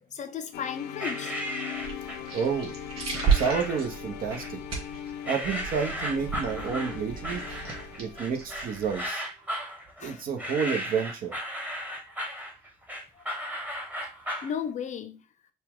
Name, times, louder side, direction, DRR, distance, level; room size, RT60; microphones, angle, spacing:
voice 1, 0.1-1.4 10.0-10.2 14.4-15.2, left 8 dB, 45° left, 0.6 m, -34 dB
sound 1, 0.5-8.8, left 9 dB, 85° left, 0.8 m, -41 dB
sound 2, 1.0-2.3 3.1-3.9 4.3-4.9 5.2-14.5, equal, 10° right, 1.1 m, -35 dB
sound 3, 1.7-9.1, right 6 dB, 35° right, 2.8 m, -33 dB
voice 2, 2.3-2.8 3.3-4.6 5.3-7.4 8.0-9.2 10.0-11.3, right 6 dB, 55° right, 1.1 m, -30 dB
5.6 x 2.4 x 3.6 m
cardioid pair, 110°, 17 cm